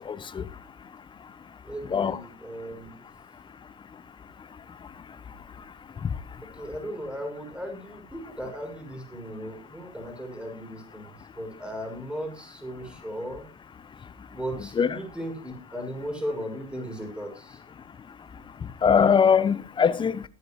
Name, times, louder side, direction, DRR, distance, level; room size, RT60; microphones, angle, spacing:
voice 1, 0.1-0.4 1.9-2.2 14.8-14.9 18.8-20.2, left 6 dB, 25° left, 1.0 m, -21 dB
voice 2, 1.6-2.9 6.4-13.4 14.3-17.6, equal, 5° right, 6.5 m, -36 dB
21.5 x 9.7 x 3.2 m
figure-of-eight pair, 75°, 19 cm